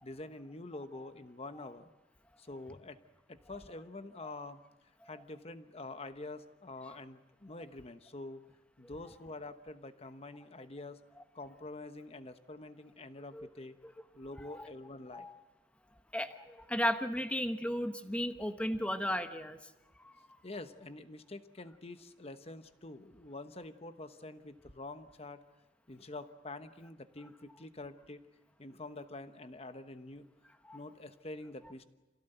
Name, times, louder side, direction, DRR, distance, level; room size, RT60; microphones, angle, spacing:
voice 1, 0.0-1.9 2.4-3.0 3.3-4.6 5.0-8.4 8.8-11.0 11.3-13.8 14.1-15.3 20.4-25.4 25.9-28.2 28.6-30.2 30.7-31.9, left 2 dB, 35° left, 10 dB, 1.1 m, -46 dB
voice 2, 16.1-19.6 20.0-20.1 30.7-30.8, equal, 5° left, 8 dB, 1.2 m, -35 dB
27.0 x 16.5 x 8.0 m, 1.1 s
head